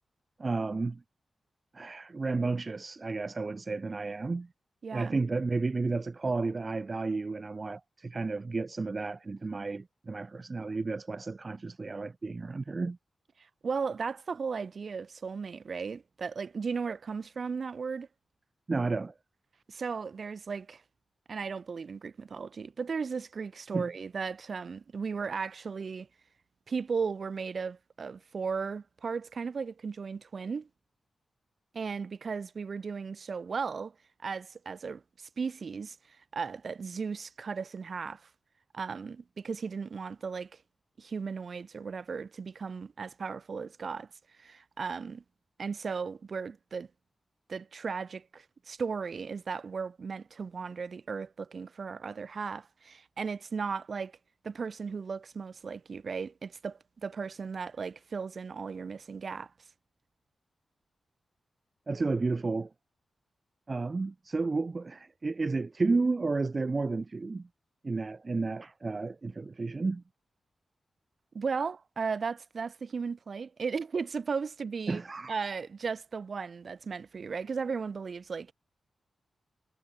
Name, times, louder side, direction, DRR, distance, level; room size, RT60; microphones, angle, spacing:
voice 1, 0.4-1.0 1.7-4.5 4.9-13.0 18.7-19.1 23.7-23.9 61.9-62.7 63.7-67.5 67.8-70.0 74.9-75.3, right 3 dB, 35° right, 1.7 m, -32 dB
voice 2, 4.8-5.2 13.6-18.1 19.7-20.8 21.3-26.1 26.7-30.7 31.7-38.3 38.7-40.5 41.0-44.1 44.4-45.2 45.6-46.9 47.5-54.2 54.4-59.5 71.3-75.0 75.3-78.5, right 5 dB, 55° right, 2.8 m, -36 dB
wide cardioid pair, 90°, 0 cm